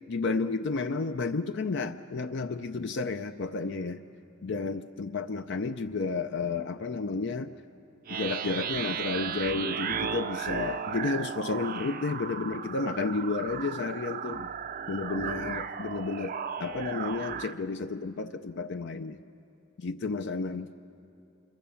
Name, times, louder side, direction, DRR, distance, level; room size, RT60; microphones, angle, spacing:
voice 1, 0.1-4.0 4.4-7.5 8.1-14.5 14.9-16.3 16.6-19.2 19.8-20.7, left 4 dB, 60° left, 8 dB, 0.5 m, -32 dB
sound 1, 8.1-17.5, right 7 dB, 45° right, 0.5 m, -35 dB
26.0 x 23.0 x 7.0 m, 2.9 s
head